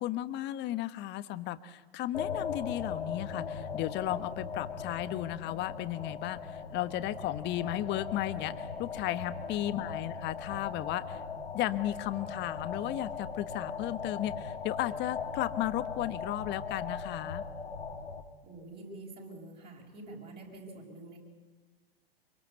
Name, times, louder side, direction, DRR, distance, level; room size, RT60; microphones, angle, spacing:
voice 1, 0.0-11.2 11.5-17.4, left 14 dB, 35° left, 13 dB, 1.3 m, -34 dB
sound 1, 2.1-18.2, left 5 dB, 90° left, 2.6 m, -39 dB
voice 2, 18.4-21.2, right 2 dB, 30° right, -1 dB, 6.4 m, -47 dB
25.0 x 24.0 x 8.2 m, 1.3 s
hypercardioid pair, 105°, 31 cm